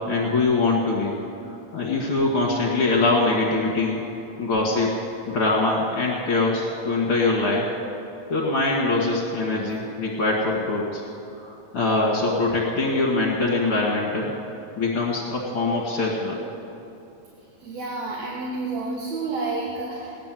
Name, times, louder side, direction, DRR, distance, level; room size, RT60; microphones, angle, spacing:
voice 1, 0.1-1.1 1.7-4.0 4.4-4.9 5.3-7.7 8.3-11.0 11.4-14.3 14.8-16.4, left 3 dB, 50° left, -4 dB, 2.4 m, -23 dB
voice 2, 17.6-20.2, right 3 dB, 75° right, -3 dB, 2.8 m, -30 dB
17.0 x 10.5 x 7.6 m, 2.8 s
omnidirectional pair, 3.3 m